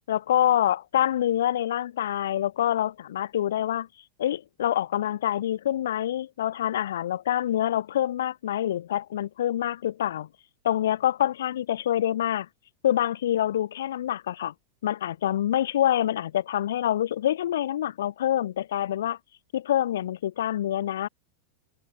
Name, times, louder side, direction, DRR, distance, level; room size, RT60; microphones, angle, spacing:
voice 1, 0.1-3.9 4.2-10.3 10.6-12.5 12.8-14.5 14.8-19.2 19.5-21.1, left 11 dB, 85° left, 0.5 m, -26 dB
supercardioid pair, 135°, 0 cm